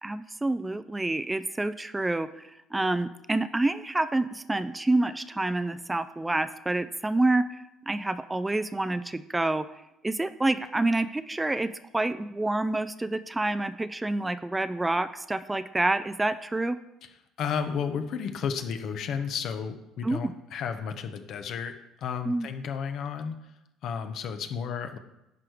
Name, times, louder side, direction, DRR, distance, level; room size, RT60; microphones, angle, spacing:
voice 1, 0.0-7.5 7.9-9.7 10.0-16.8 20.0-20.3 22.3-22.5, right 2 dB, 15° right, 13 dB, 0.4 m, -28 dB
voice 2, 17.4-21.8 22.0-23.4 23.8-25.0, left 7 dB, 65° left, 8 dB, 0.9 m, -32 dB
11.0 x 4.6 x 5.0 m, 0.89 s
supercardioid pair, 85°, 0 cm